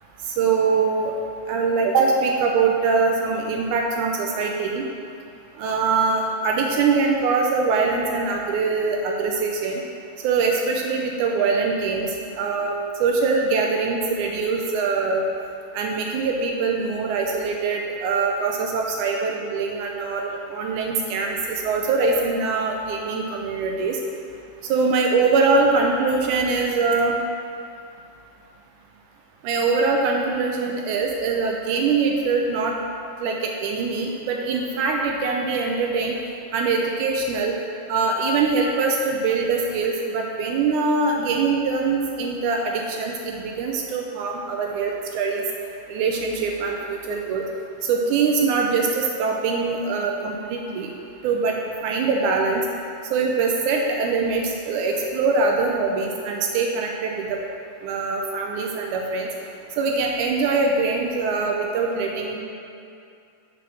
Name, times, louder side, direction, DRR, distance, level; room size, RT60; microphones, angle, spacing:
voice 1, 0.3-1.1 1.5-4.9 5.6-9.8 10.2-15.3 15.7-24.0 24.7-27.2 29.4-32.8 33.2-36.1 36.5-37.5 37.9-45.4 45.9-47.4 47.8-50.9 51.2-51.6 51.8-52.6 53.1-57.4 57.8-59.3 59.8-62.4, right 4 dB, 80° right, 0 dB, 1.9 m, -23 dB
6.1 x 5.0 x 6.1 m, 2.5 s
omnidirectional pair, 3.8 m